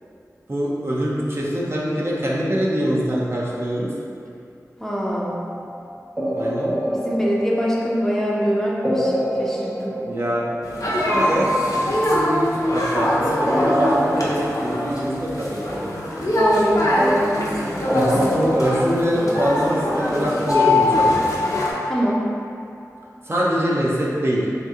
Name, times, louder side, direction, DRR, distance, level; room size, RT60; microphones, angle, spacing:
voice 1, 0.5-3.9 6.3-6.7 10.0-10.5 10.9-16.0 17.9-21.2 23.3-24.5, equal, 40° right, -5 dB, 0.6 m, -24 dB
voice 2, 4.8-5.4 6.9-9.1 9.4-9.9 16.3-17.8 21.9-22.2, equal, 5° left, -5 dB, 0.5 m, -23 dB
sound 1, 5.1-5.6 6.2-8.2 8.8-10.8 11.1-13.1 13.5-15.2 17.9-19.7 20.5-22.5, left 1 dB, 20° right, 1.0 m, -24 dB
sound 2, 10.6-21.7, equal, 65° left, 0.6 m, -23 dB
2.8 x 2.6 x 3.5 m, 2.5 s
wide cardioid pair, 45°, 6 cm